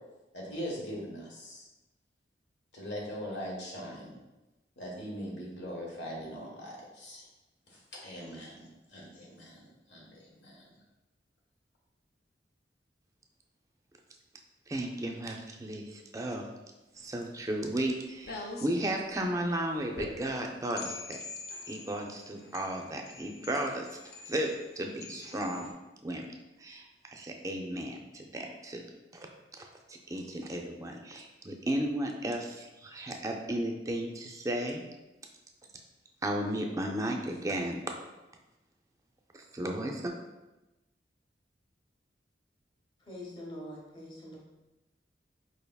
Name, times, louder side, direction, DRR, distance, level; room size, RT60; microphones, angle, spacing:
voice 1, 0.3-1.7 2.7-4.2 4.8-7.3 7.7-10.7, equal, 85° left, -3 dB, 1.2 m, -41 dB
voice 2, 14.7-16.5 17.0-21.2 21.7-24.0 24.3-25.7 26.0-26.3 26.6-28.8 29.1-29.3 29.9-34.8 36.2-37.9 39.3-40.1, right 1 dB, 20° right, 2 dB, 0.4 m, -34 dB
sound 1, 16.9-25.7, left 3 dB, 60° left, 0.5 m, -46 dB
voice 3, 43.0-44.4, left 1 dB, 30° left, -3 dB, 0.9 m, -44 dB
4.6 x 3.4 x 2.3 m, 1.0 s
head